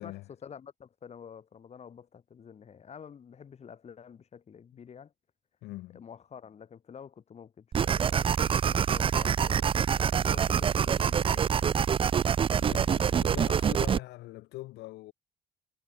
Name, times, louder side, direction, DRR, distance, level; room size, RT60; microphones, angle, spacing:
voice 1, 0.0-5.1 5.9-11.8, left 7 dB, 40° left, 3.9 m, -49 dB
voice 2, 5.6-6.0 12.6-15.1, left 18 dB, 85° left, 3.2 m, -42 dB
sound 1, 7.7-14.0, right 7 dB, 30° right, 0.5 m, -26 dB
cardioid pair, 110°, 17 cm